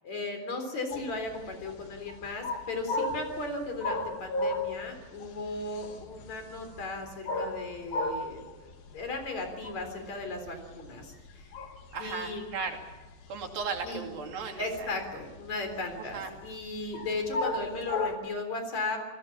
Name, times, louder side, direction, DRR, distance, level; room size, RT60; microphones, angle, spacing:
voice 1, 0.0-11.5 12.0-12.5 13.8-14.0 14.6-19.0, left 2 dB, 50° left, 6 dB, 4.9 m, -36 dB
sound 1, 0.9-18.2, left 2 dB, 80° left, 4.0 m, -35 dB
voice 2, 11.9-12.8 13.3-14.9 16.1-16.3, right 5 dB, 80° right, 3 dB, 4.5 m, -36 dB
28.5 x 19.0 x 7.3 m, 1.2 s
omnidirectional pair, 4.1 m